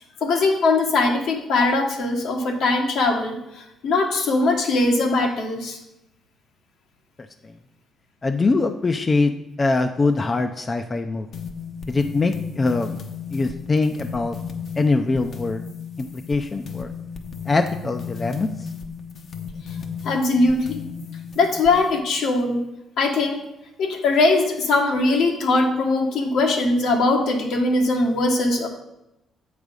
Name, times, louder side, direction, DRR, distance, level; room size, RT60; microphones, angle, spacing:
voice 1, 0.2-3.4 3.8-5.8 20.0-20.8 21.3-22.6 23.0-23.4 23.8-28.7, left 2 dB, 80° left, 2 dB, 1.4 m, -20 dB
voice 2, 8.2-9.3 9.6-11.3 11.9-13.0 13.3-14.4 14.8-15.6 16.0-16.9 17.5-18.5, left 3 dB, 30° left, 7 dB, 0.5 m, -22 dB
sound 1, 11.3-22.0, left 6 dB, 60° left, 0.8 m, -35 dB
7.9 x 4.9 x 5.2 m, 0.88 s
cardioid pair, 90°, 0 cm